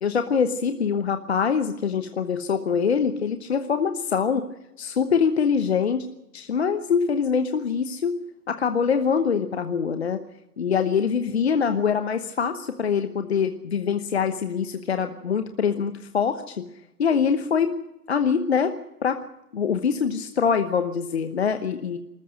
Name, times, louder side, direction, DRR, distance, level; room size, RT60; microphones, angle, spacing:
voice 1, 0.0-4.4 4.8-6.0 6.3-8.2 8.5-10.2 10.6-16.7 17.0-17.7 18.1-18.7 19.0-19.2 19.5-22.0, left 6 dB, 40° left, 9 dB, 1.1 m, -24 dB
24.5 x 14.0 x 7.9 m, 0.91 s
figure-of-eight pair, 150°, 48 cm